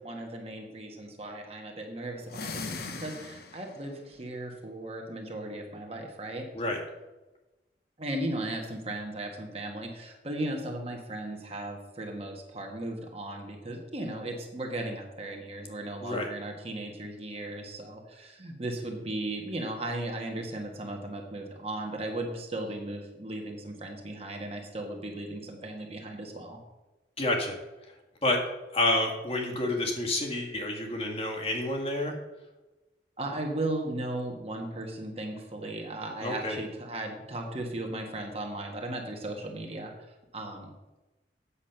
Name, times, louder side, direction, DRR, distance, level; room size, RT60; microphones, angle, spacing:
voice 1, 0.0-6.5 8.0-26.6 33.2-39.9 40.3-40.7, right 1 dB, 35° right, 2 dB, 1.6 m, -36 dB
sound 1, 2.2-3.9, left 4 dB, 60° left, 1.1 m, -39 dB
voice 2, 27.2-27.6 28.2-28.4 28.7-32.1 36.2-36.6, left 1 dB, 35° left, 1 dB, 1.8 m, -29 dB
8.5 x 7.2 x 5.9 m, 1.1 s
head